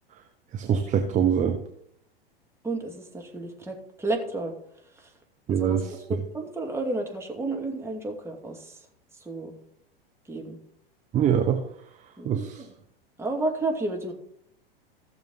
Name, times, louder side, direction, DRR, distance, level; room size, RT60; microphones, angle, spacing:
voice 1, 0.5-1.6 5.5-6.0 11.1-11.6 12.2-12.6, right 8 dB, 25° right, 5 dB, 1.1 m, -24 dB
voice 2, 2.6-4.5 5.0-5.1 5.5-8.8 9.2-9.5 10.3-10.6 12.2-12.7 13.2-14.1, right 2 dB, 10° right, 0 dB, 2.4 m, -32 dB
15.5 x 6.9 x 4.0 m, 0.70 s
figure-of-eight pair, 95°, 29 cm